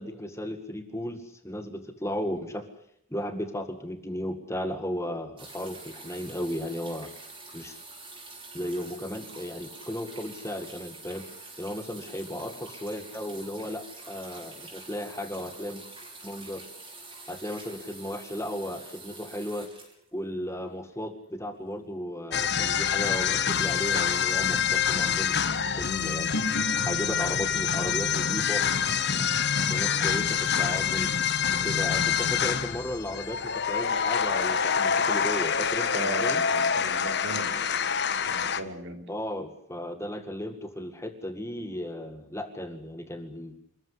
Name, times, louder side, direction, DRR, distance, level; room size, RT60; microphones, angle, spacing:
voice 1, 0.0-2.6 3.1-7.1 7.5-7.8 8.5-11.2 11.6-15.8 16.2-16.7 17.3-19.7 20.1-25.4 25.7-26.3 26.8-28.6 29.7-31.1 31.6-36.4 39.1-43.5, equal, 15° left, 7 dB, 2.0 m, -35 dB
sound 1, 5.4-20.7 21.7-21.8, right 3 dB, 25° right, 6.2 m, -46 dB
sound 2, 22.3-38.6, left 7 dB, 50° left, 1.4 m, -26 dB
sound 3, 25.5-32.3, left 2 dB, 85° left, 0.9 m, -38 dB
voice 2, 35.9-37.6 38.3-39.1, right 2 dB, 55° right, 6 dB, 3.4 m, -37 dB
26.5 x 15.0 x 10.0 m, 0.70 s
head